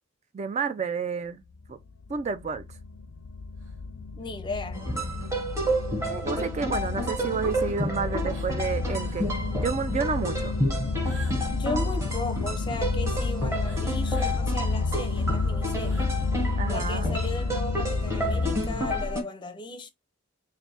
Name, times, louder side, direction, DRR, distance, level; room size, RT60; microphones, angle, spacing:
voice 1, 0.3-1.4 1.7-1.8 2.1-2.6 6.1-10.5 16.6-17.1, right 5 dB, 35° right, 0.3 m, -30 dB
sound 1, 1.7-19.2, left 3 dB, 85° left, 0.5 m, -30 dB
sound 2, 3.6-3.8 4.2-4.3 5.9-6.0 6.7-6.8 8.3-8.7 9.0-9.4 11.0-12.8 13.6-14.9 15.3-16.2 16.6-16.7 17.0-17.4 18.2-18.4, right 4 dB, 75° right, 2.0 m, -50 dB
voice 2, 4.1-4.8 11.5-16.1 16.7-19.9, left 3 dB, 25° left, 0.5 m, -36 dB
sound 3, 4.7-19.2, right 1 dB, 15° right, 1.0 m, -31 dB
3.3 x 2.6 x 4.1 m
head